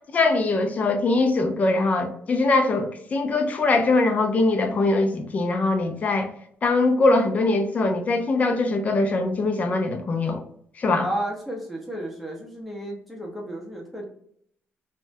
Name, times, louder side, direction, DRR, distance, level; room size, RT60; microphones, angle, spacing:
voice 1, 0.1-6.3 6.6-10.4 10.8-11.0, left 3 dB, 35° left, 0.4 m, -22 dB
voice 2, 11.0-14.1, right 1 dB, ahead, 0.7 m, -32 dB
3.4 x 2.1 x 2.6 m
cardioid pair, 155°, 5 cm